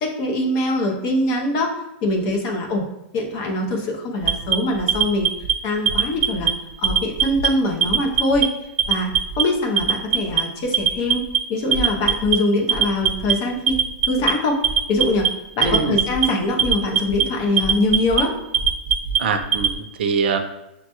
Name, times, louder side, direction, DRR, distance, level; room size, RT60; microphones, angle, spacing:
voice 1, 0.0-1.7 2.0-2.9 3.1-5.3 5.6-6.5 6.8-8.5 8.9-11.2 11.5-13.8 14.1-14.6 14.9-15.3 15.6-18.3, left 1 dB, 35° left, 2 dB, 0.6 m, -23 dB
Alarm, 4.2-5.5 5.9-6.5 6.8-7.5 7.8-8.4 8.8-9.4 9.8-10.4 10.7-11.4 11.7-12.3 12.7-13.3 13.7-14.3 14.6-15.3 15.6-16.3 16.6-17.2 17.6-18.2 18.5-19.7, right 8 dB, 20° right, 0.3 m, -19 dB
voice 2, 15.6-16.0 19.2-20.4, right 5 dB, 75° right, 7 dB, 0.5 m, -23 dB
6.4 x 2.2 x 2.9 m, 0.91 s
supercardioid pair, 170°, 6 cm